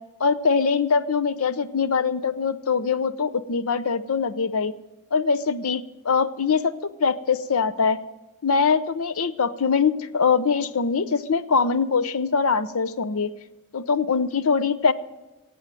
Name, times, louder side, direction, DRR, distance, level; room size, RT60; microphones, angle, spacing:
voice 1, 0.2-4.7 5.1-6.7 7.0-8.0 8.4-13.3 13.7-14.9, left 5 dB, 75° left, 14 dB, 0.7 m, -22 dB
17.5 x 7.9 x 7.6 m, 1.1 s
head